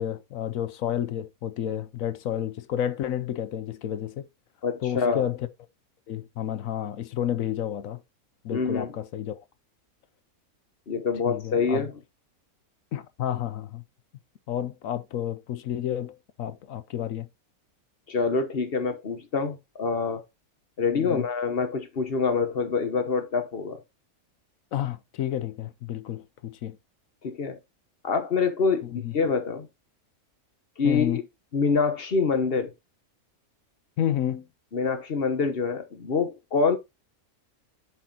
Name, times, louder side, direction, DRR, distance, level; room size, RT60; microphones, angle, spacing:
voice 1, 0.0-4.3 4.8-5.5 6.1-8.0 8.4-9.4 11.3-11.9 12.9-13.8 14.5-17.3 20.9-21.3 24.7-26.8 28.8-29.1 30.8-31.2 34.0-34.5, left 10 dB, 70° left, 1.1 m, -30 dB
voice 2, 4.6-5.2 8.5-8.9 10.9-11.9 18.1-20.2 20.8-23.8 27.2-27.6 28.0-29.7 30.8-31.2 31.5-32.7 34.7-36.8, left 5 dB, 45° left, 1.2 m, -26 dB
8.2 x 6.3 x 2.8 m
omnidirectional pair, 1.6 m